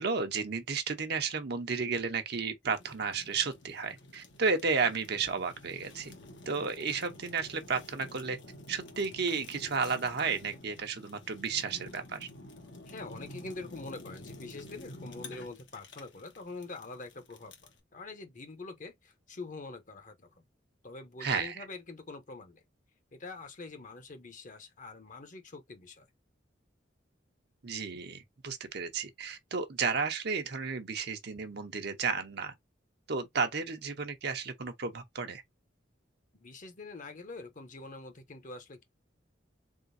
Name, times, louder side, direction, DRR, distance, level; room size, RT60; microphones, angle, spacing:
voice 1, 0.0-6.1 6.5-8.4 8.7-12.3 21.2-21.7 27.6-32.5 33.1-35.4, right 5 dB, 60° right, 0.9 m, -33 dB
Fire, 2.6-17.8, left 1 dB, 75° left, 1.2 m, -50 dB
voice 2, 12.9-20.3 20.8-22.6 23.1-26.1 36.3-38.8, left 3 dB, 45° left, 0.9 m, -45 dB
3.9 x 3.7 x 2.7 m
head